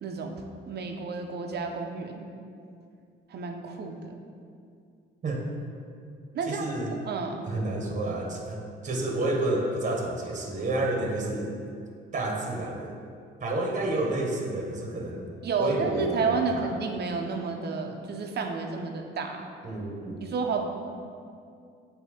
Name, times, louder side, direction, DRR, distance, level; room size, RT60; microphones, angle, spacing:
voice 1, 0.0-2.3 3.3-4.2 6.3-6.7 7.0-7.5 15.4-19.5 20.2-20.7, right 4 dB, 55° right, 4 dB, 0.7 m, -31 dB
voice 2, 6.5-6.9 7.5-11.6 12.1-13.0 13.4-15.3 15.6-16.7 19.6-20.2, right 2 dB, 40° right, 0 dB, 1.0 m, -30 dB
8.4 x 2.8 x 4.2 m, 2.4 s
cardioid pair, 90°, 20 cm